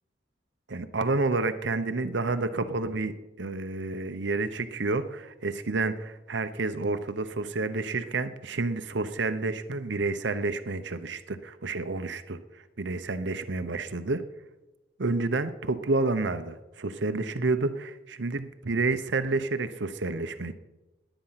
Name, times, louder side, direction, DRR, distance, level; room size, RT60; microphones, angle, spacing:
voice 1, 0.7-14.2 15.0-20.5, right 3 dB, 70° right, 10 dB, 0.8 m, -29 dB
20.5 x 9.0 x 5.8 m, 1.1 s
head